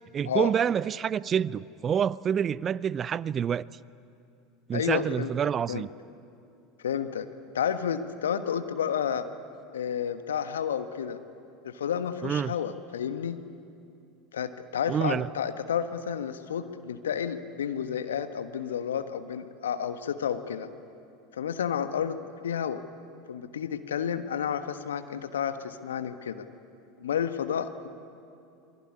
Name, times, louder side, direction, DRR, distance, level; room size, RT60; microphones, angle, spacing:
voice 1, 0.1-3.7 4.7-5.9 12.2-12.5 14.9-15.3, right 8 dB, 30° right, 0.5 m, -27 dB
voice 2, 4.7-5.3 5.7-5.9 6.8-7.3 7.5-9.3 9.7-11.2 11.6-13.4 14.3-20.7 21.3-22.8 23.3-26.4 27.0-27.9, left 8 dB, 75° left, 1.4 m, -31 dB
28.0 x 21.0 x 9.7 m
figure-of-eight pair, 80°, 0 cm